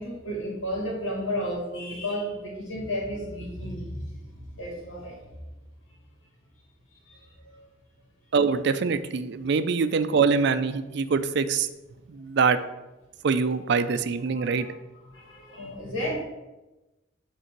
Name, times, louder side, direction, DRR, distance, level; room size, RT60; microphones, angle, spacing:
voice 1, 0.0-4.0 4.5-5.2 7.1-7.2 7.5-7.6 14.3-14.7 15.1-16.1, equal, 90° left, -3 dB, 2.5 m, -32 dB
voice 2, 8.3-11.7 12.1-12.6 13.2-14.7, right 5 dB, 60° right, 12 dB, 0.4 m, -24 dB
8.0 x 3.8 x 4.5 m, 1.1 s
head